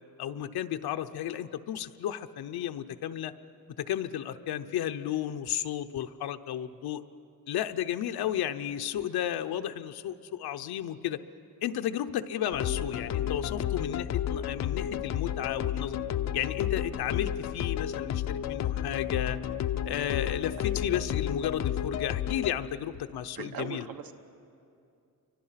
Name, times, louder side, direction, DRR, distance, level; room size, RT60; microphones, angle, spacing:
voice 1, 0.2-3.3 3.8-7.0 7.5-11.2 11.6-16.0 16.3-19.4 19.9-23.8, left 11 dB, 75° left, 8 dB, 0.8 m, -33 dB
sound 1, 12.5-22.5, left 10 dB, 45° left, 0.5 m, -31 dB
voice 2, 23.3-24.1, right 6 dB, 65° right, 7 dB, 1.3 m, -38 dB
29.5 x 24.5 x 5.8 m, 2.5 s
wide cardioid pair, 180°, 38 cm